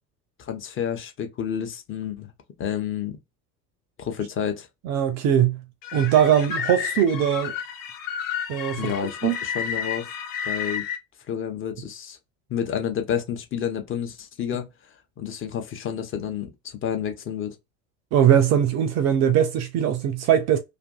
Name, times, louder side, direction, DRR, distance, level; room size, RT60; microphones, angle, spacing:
voice 1, 0.4-2.3 2.6-3.2 4.0-4.7 8.8-10.1 10.5-10.8 11.3-12.2 12.5-17.6, left 8 dB, 25° left, 0.7 m, -30 dB
voice 2, 4.8-5.6 5.9-7.5 8.5-9.4 18.1-20.6, right 9 dB, 35° right, 0.5 m, -21 dB
sound 1, 5.8-11.0, left 7 dB, 45° left, 1.1 m, -31 dB
2.5 x 2.4 x 2.3 m
figure-of-eight pair, 65°, 46 cm